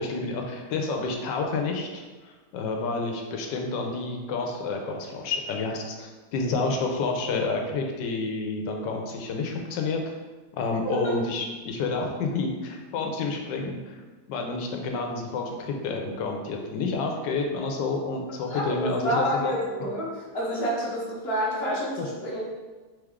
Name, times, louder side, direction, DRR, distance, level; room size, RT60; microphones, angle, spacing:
voice 1, 0.0-10.0 10.6-13.9 14.3-19.5 22.0-22.1, left 3 dB, 75° left, 2 dB, 1.3 m, -29 dB
voice 2, 18.5-22.5, equal, 45° left, -4 dB, 0.9 m, -28 dB
3.5 x 3.4 x 3.5 m, 1.3 s
omnidirectional pair, 2.0 m